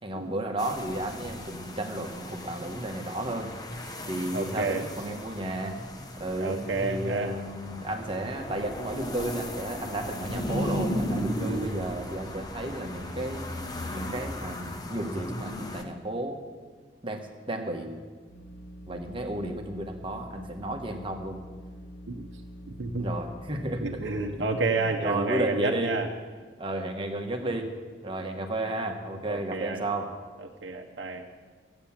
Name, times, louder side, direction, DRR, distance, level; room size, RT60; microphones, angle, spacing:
voice 1, 0.0-3.5 4.1-5.8 6.2-13.4 13.9-16.4 17.0-17.9 18.9-21.4 23.0-23.9 24.4-24.5 24.8-25.9 26.6-27.7 28.0-30.1, right 1 dB, 30° right, 3 dB, 1.3 m, -33 dB
sound 1, 0.6-15.8, left 1 dB, 20° left, 1.1 m, -36 dB
voice 2, 4.3-4.8 6.4-7.3 22.1-22.3 22.8-23.1 23.8-26.1 29.3-29.8 30.6-31.2, right 3 dB, 80° right, 2 dB, 0.8 m, -30 dB
sound 2, 18.3-24.7, equal, 90° left, 5.3 m, -45 dB
14.5 x 9.0 x 7.3 m, 1.5 s
head